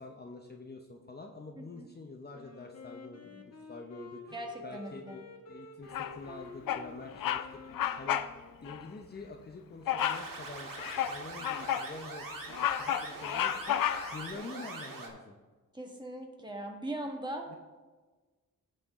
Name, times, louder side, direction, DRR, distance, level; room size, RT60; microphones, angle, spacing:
voice 1, 0.0-3.3 3.7-4.4 4.6-5.2 5.5-8.2 8.6-13.8 14.1-15.4 17.5-17.6, left 3 dB, 30° left, 2 dB, 0.8 m, -46 dB
voice 2, 1.6-1.9 3.2-3.3 4.3-5.2 15.7-17.5, right 1 dB, 15° right, 1 dB, 1.6 m, -40 dB
Wind instrument woodwind instrument, 2.3-9.0, left 3 dB, 50° left, 1.2 m, -50 dB
Bird vocalization bird call bird song, 5.9-6.3 6.7-6.9 7.2-7.5 7.7-8.3 8.7-8.8 9.9-10.3 10.8-11.9 12.3-14.3, left 10 dB, 80° left, 0.5 m, -31 dB
sound 1, 10.0-15.1, right 3 dB, 75° right, 1.8 m, -43 dB
15.0 x 5.5 x 3.7 m, 1.3 s
wide cardioid pair, 90°, 34 cm